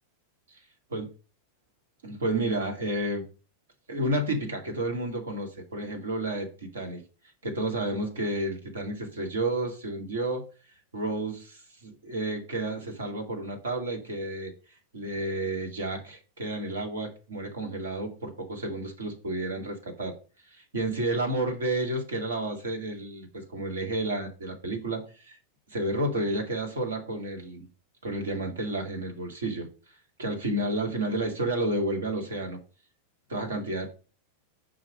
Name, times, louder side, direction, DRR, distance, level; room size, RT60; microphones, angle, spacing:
voice 1, 2.0-3.3 3.9-7.0 7.4-10.5 10.9-14.5 14.9-20.1 20.5-25.4 25.7-27.7 28.0-29.7 30.2-32.6 33.3-33.9, right 1 dB, 65° right, 2.3 m, -31 dB
5.8 x 4.8 x 6.4 m
figure-of-eight pair, 90°, 0 cm